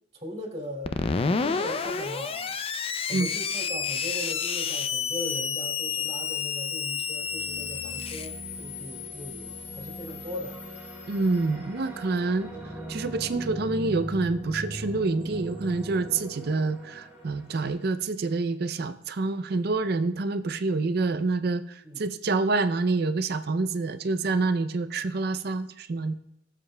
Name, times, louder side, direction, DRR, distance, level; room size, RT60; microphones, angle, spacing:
voice 1, 0.1-2.5 3.1-10.6 21.8-22.1, equal, 35° right, -1 dB, 2.6 m, -39 dB
Screech, 0.8-11.3, left 6 dB, 30° left, 0.4 m, -31 dB
sound 1, 5.9-6.5 7.0-17.7, right 1 dB, 10° right, 3.7 m, -40 dB
voice 2, 11.1-12.5 12.9-26.2, right 3 dB, 60° right, 11 dB, 0.5 m, -27 dB
21.0 x 7.5 x 2.2 m, 0.79 s
head